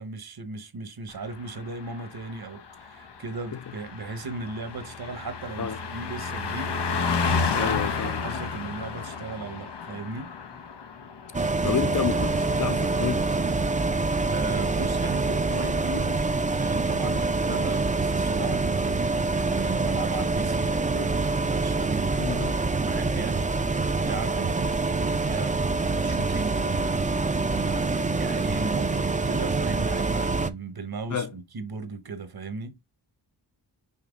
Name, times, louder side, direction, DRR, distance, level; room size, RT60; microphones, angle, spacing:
voice 1, 0.0-6.8 7.4-10.3 14.2-21.2 21.5-22.2 22.5-23.5 23.9-27.0 27.5-32.8, right 4 dB, 60° right, 1.3 m, -36 dB
Car passing by, 1.2-13.1 13.4-13.7, left 5 dB, 75° left, 1.0 m, -32 dB
voice 2, 7.6-8.2 11.6-13.3 22.2-22.6 31.1-31.3, left 7 dB, 45° left, 0.7 m, -30 dB
sound 1, 11.3-30.5, right 3 dB, 20° right, 0.6 m, -26 dB
5.7 x 3.3 x 5.1 m
wide cardioid pair, 70°, 41 cm